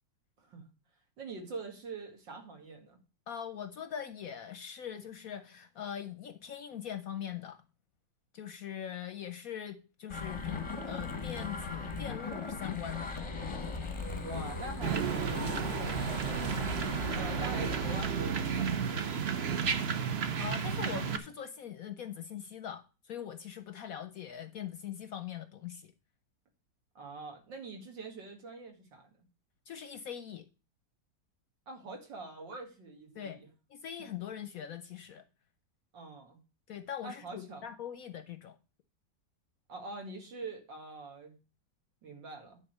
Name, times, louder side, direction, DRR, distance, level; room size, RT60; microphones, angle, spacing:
voice 1, 1.2-3.0 14.2-16.2 17.1-20.4 26.9-29.1 31.7-33.5 35.9-36.4 37.0-37.7 39.7-41.3 42.0-42.6, right 3 dB, 80° right, 2.8 m, -45 dB
voice 2, 3.3-7.6 8.3-13.1 20.4-25.9 29.7-30.5 33.1-33.4 33.7-35.2 36.7-38.6, left 9 dB, 65° left, 0.9 m, -42 dB
sound 1, 10.1-18.0, left 3 dB, 25° left, 0.7 m, -38 dB
sound 2, 14.8-21.2, right 7 dB, 50° right, 0.8 m, -32 dB
10.0 x 4.2 x 6.5 m
omnidirectional pair, 2.0 m